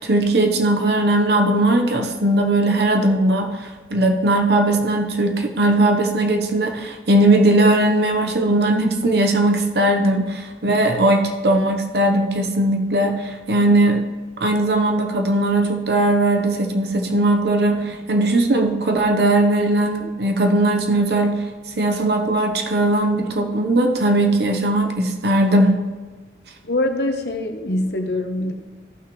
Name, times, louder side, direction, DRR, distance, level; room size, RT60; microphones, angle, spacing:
voice 1, 0.0-14.0 14.4-21.4 21.8-25.9, right 1 dB, 70° right, 4 dB, 0.9 m, -19 dB
voice 2, 26.6-28.5, left 1 dB, 70° left, 5 dB, 1.0 m, -23 dB
14.5 x 6.2 x 3.1 m, 1.3 s
head